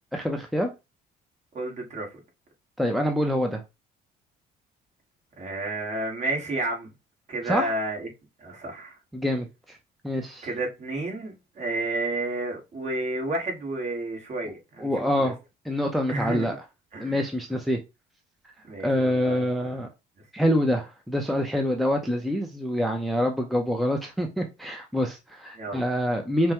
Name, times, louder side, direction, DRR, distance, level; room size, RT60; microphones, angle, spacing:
voice 1, 0.1-0.7 2.8-3.6 7.4-7.7 9.1-9.8 10.0-10.5 14.8-15.4 15.7-16.5 17.0-17.8 18.8-19.9 20.3-26.5, equal, ahead, 0.6 m, -26 dB
voice 2, 1.5-2.1 5.4-6.9 7.3-8.1 8.4-8.9 10.4-15.3 16.1-16.5 16.9-17.2 18.6-19.7 25.5-25.8, right 2 dB, 40° right, 1.7 m, -31 dB
5.4 x 2.2 x 2.9 m
cardioid pair, 110°, 17 cm